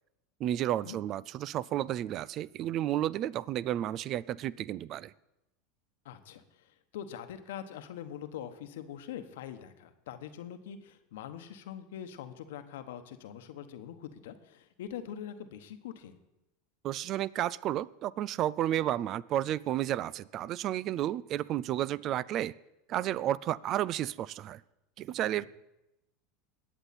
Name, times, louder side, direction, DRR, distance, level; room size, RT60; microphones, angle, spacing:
voice 1, 0.4-5.1 16.8-22.5 22.9-24.6 25.0-25.5, right 12 dB, 45° right, 22 dB, 0.4 m, -32 dB
voice 2, 6.0-16.2 25.4-25.5, left 9 dB, 75° left, 10 dB, 1.1 m, -43 dB
21.0 x 8.1 x 4.2 m, 0.92 s
hypercardioid pair, 90°, 0 cm